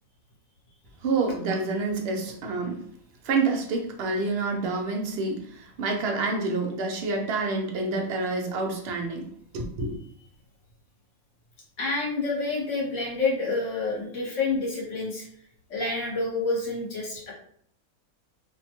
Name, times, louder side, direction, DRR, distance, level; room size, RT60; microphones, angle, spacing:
voice 1, 1.0-2.8 3.2-9.3 9.5-10.0, right 3 dB, 65° right, 0.6 m, -28 dB
voice 2, 11.8-15.3 15.7-17.3, left 3 dB, 60° left, 1.2 m, -28 dB
2.7 x 2.2 x 2.9 m
omnidirectional pair, 1.5 m